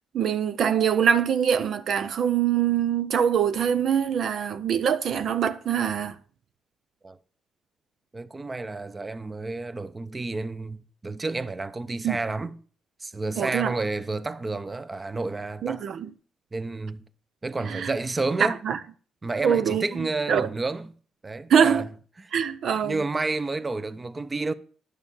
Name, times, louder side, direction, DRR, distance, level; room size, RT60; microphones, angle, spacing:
voice 1, 0.1-6.2 12.0-12.2 13.4-13.8 15.6-16.1 17.6-17.9 18.4-18.8 19.4-19.8 20.3-20.5 21.5-21.9 22.3-23.0, right 8 dB, 65° right, 0.6 m, -23 dB
voice 2, 8.1-12.6 13.0-15.8 16.5-17.0 17.4-18.6 19.2-20.9 21.2-21.9 22.2-22.3 22.8-24.5, right 3 dB, 25° right, 0.7 m, -30 dB
11.0 x 6.8 x 7.2 m
cardioid pair, 90°, 0 cm